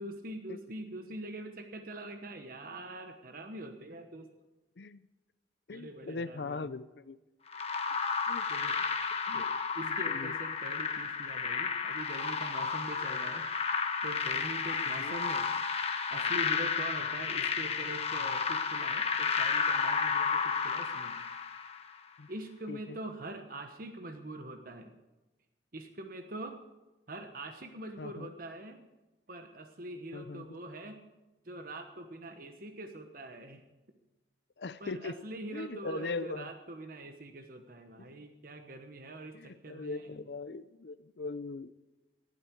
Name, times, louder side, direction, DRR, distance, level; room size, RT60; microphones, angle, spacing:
voice 1, 0.0-4.3 5.7-6.6 8.5-8.8 9.3-13.5 14.0-15.5 16.1-21.1 22.3-24.9 25.7-26.6 27.1-28.8 29.3-31.0 31.4-33.6 34.8-40.2, right 1 dB, 50° right, 6 dB, 1.2 m, -44 dB
voice 2, 4.8-5.1 5.7-7.2 8.3-8.5 9.3-9.5 9.8-10.3 13.1-13.2 14.8-15.2 22.2-22.3 22.7-23.0 28.0-28.3 30.1-30.6 34.6-35.2 35.5-36.5 38.0-38.2 39.3-41.7, left 3 dB, 65° left, 13 dB, 0.6 m, -40 dB
sound 1, 7.5-21.9, left 5 dB, 35° left, 1.2 m, -32 dB
18.5 x 12.0 x 4.7 m, 1.1 s
head